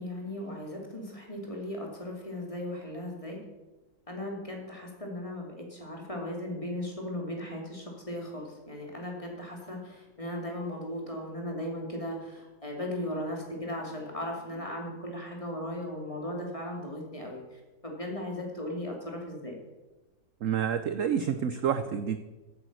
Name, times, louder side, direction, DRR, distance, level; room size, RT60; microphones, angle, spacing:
voice 1, 0.0-3.4 4.1-19.5, left 1 dB, 15° left, 0 dB, 2.8 m, -37 dB
voice 2, 20.4-22.2, right 8 dB, 70° right, 10 dB, 0.7 m, -28 dB
15.0 x 8.4 x 6.3 m, 1.1 s
omnidirectional pair, 2.1 m